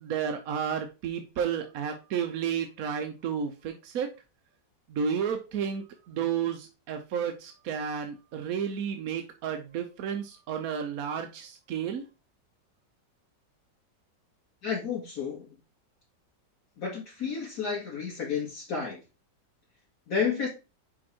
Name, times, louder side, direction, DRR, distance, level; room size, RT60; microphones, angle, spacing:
voice 1, 0.0-4.1 4.9-12.0, right 7 dB, 60° right, 1.0 m, -32 dB
voice 2, 14.6-15.5 16.8-19.0 20.1-20.5, left 6 dB, 55° left, 2.9 m, -31 dB
5.1 x 4.6 x 4.2 m
omnidirectional pair, 2.0 m